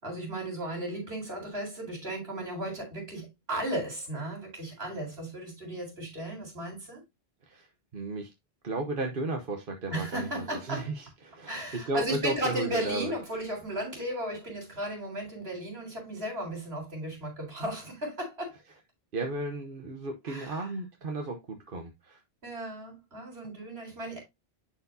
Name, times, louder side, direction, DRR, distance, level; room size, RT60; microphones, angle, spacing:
voice 1, 0.0-7.0 9.9-10.9 11.5-18.5 20.3-20.7 22.4-24.2, right 1 dB, 75° right, 4.3 m, -35 dB
voice 2, 7.9-8.3 8.6-13.1 19.1-22.2, right 2 dB, 60° right, 1.2 m, -34 dB
10.5 x 4.6 x 2.6 m
omnidirectional pair, 1.0 m